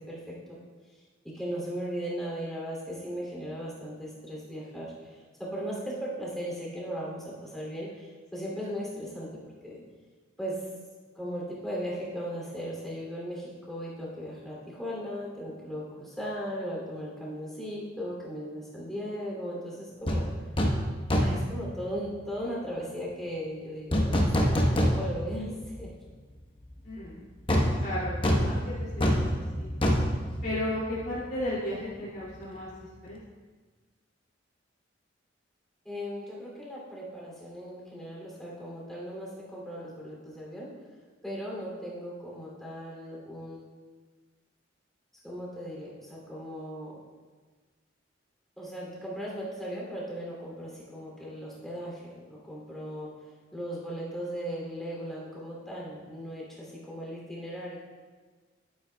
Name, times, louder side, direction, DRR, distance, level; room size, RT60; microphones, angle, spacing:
voice 1, 0.1-0.6 1.2-4.9 5.4-9.3 9.6-9.8 10.4-10.6 11.2-20.2 21.1-25.9 35.8-40.7 41.2-43.6 45.2-47.0 48.6-53.1 53.5-57.8, equal, ahead, -5 dB, 2.8 m, -37 dB
sound 1, 20.1-20.2 20.6-20.8 21.1-21.5 23.9-25.3 25.7-25.8 27.5-31.1 31.4-31.5, equal, 30° left, 1.0 m, -25 dB
voice 2, 26.8-27.2 27.8-29.7 30.4-32.7 33.0-33.2, left 1 dB, 55° left, -10 dB, 2.6 m, -34 dB
11.5 x 9.7 x 2.3 m, 1.4 s
head